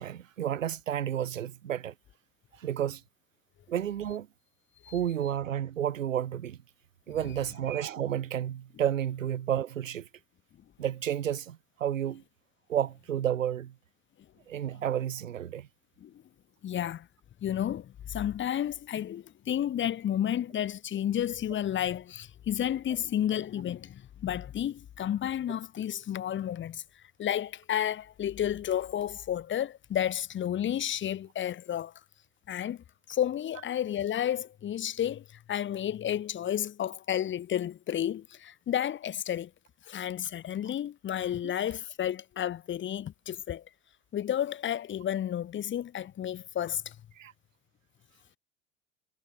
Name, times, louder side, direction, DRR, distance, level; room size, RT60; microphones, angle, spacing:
voice 1, 0.0-1.9 2.5-3.0 3.7-4.3 4.9-6.6 7.1-10.1 10.8-12.2 12.7-13.7 14.5-15.7 41.4-41.5 47.2-47.3, right 10 dB, 90° right, 0.7 m, -31 dB
voice 2, 16.6-17.1 17.4-26.8 27.2-31.9 32.5-39.5 39.8-43.6 44.1-47.0, left 10 dB, 30° left, 1.5 m, -31 dB
hypercardioid pair, 80°, 38 cm